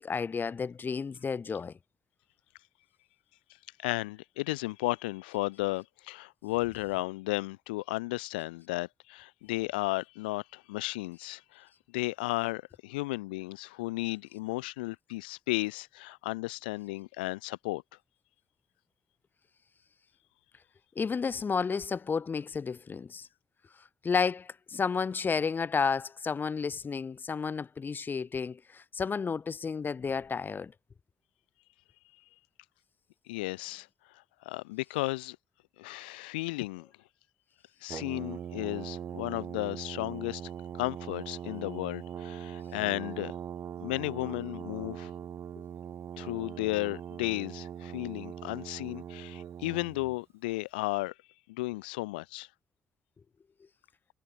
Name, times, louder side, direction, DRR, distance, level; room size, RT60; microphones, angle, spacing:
voice 1, 0.0-1.7 21.0-23.3 24.0-30.7, left 5 dB, 40° left, 6.1 m, -31 dB
voice 2, 3.8-17.8 33.3-33.9 34.4-35.4 35.8-36.9 37.8-43.3 43.8-45.1 46.2-51.1 51.5-52.5, left 22 dB, 80° left, 1.8 m, -34 dB
Brass instrument, 37.9-50.2, right 9 dB, 55° right, 3.3 m, -41 dB
figure-of-eight pair, 45°, 5 cm